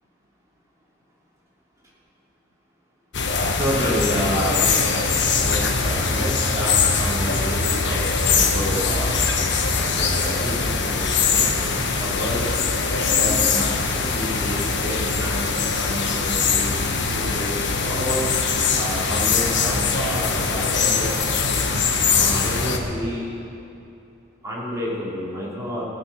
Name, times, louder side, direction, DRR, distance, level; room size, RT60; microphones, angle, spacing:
sound 1, 3.1-22.8, left 4 dB, 55° left, 1.0 m, -22 dB
voice 1, 3.5-4.7 5.3-12.5 13.1-16.8 17.1-18.3 18.8-21.5 22.1-23.3 24.4-25.8, equal, 15° right, -7 dB, 3.1 m, -30 dB
16.0 x 8.4 x 6.8 m, 2.7 s
head